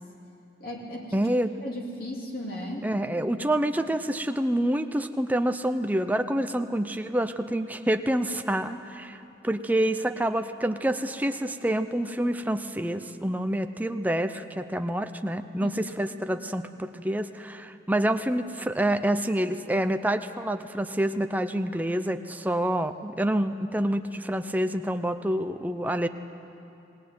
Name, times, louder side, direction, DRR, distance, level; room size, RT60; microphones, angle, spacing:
voice 1, 0.6-1.3 1.6-2.9 15.6-16.1, equal, 50° left, -2 dB, 2.8 m, -36 dB
voice 2, 1.1-1.5 2.8-26.1, right 1 dB, 10° right, 8 dB, 0.6 m, -27 dB
20.5 x 18.0 x 9.4 m, 2.9 s
head